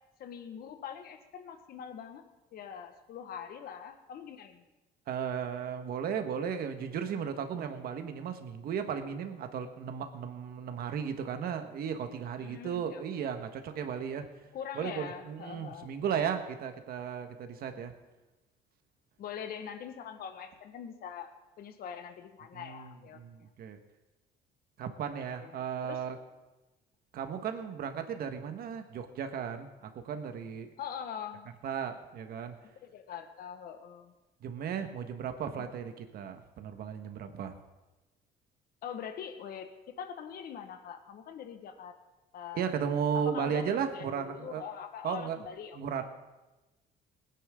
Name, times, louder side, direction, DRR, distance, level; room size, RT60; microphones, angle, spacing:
voice 1, 0.2-2.2 2.5-4.6 12.4-13.0 14.5-16.0 19.2-23.5 25.4-26.0 30.8-31.5 32.6-34.1 35.5-35.7 38.8-42.0 42.3-42.6 43.1-46.0, left 8 dB, 65° left, 7 dB, 1.4 m, -43 dB
voice 2, 5.1-14.3 14.7-17.9 22.5-23.8 24.8-26.2 27.1-30.7 31.6-32.5 34.4-37.5 42.5-44.6 45.0-45.4 45.7-46.0, right 7 dB, 65° right, 7 dB, 1.5 m, -35 dB
19.5 x 10.0 x 3.7 m, 1.1 s
cardioid pair, 110°, 17 cm